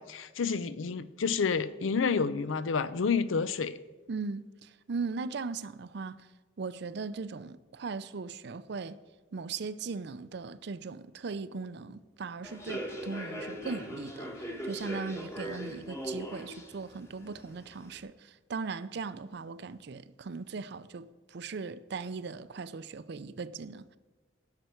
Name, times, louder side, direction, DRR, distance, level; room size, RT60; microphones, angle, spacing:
voice 1, 0.0-3.8, left 5 dB, 85° left, 0.5 m, -29 dB
voice 2, 4.1-6.2 6.6-9.0 9.3-24.0, right 4 dB, 60° right, 0.5 m, -39 dB
Human voice / Subway metro underground, 12.4-18.0, equal, 15° left, 1.2 m, -40 dB
17.5 x 6.7 x 4.5 m
head